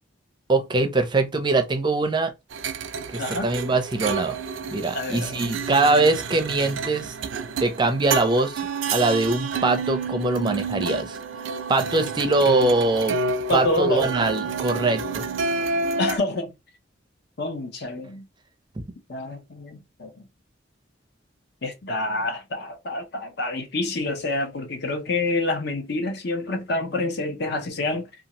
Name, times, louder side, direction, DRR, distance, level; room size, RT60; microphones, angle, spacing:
voice 1, 0.5-2.3 3.1-4.4 4.7-7.1 7.6-8.6 8.9-11.2 11.7-13.2 13.5-15.2, right 2 dB, 25° right, 0.5 m, -22 dB
sound 1, 2.5-16.2, right 4 dB, 80° right, 0.4 m, -30 dB
voice 2, 4.9-5.5 13.5-14.2 16.0-16.5 17.4-18.2 19.1-20.2 21.6-28.1, left 2 dB, 60° left, 0.7 m, -27 dB
2.6 x 2.3 x 2.9 m
head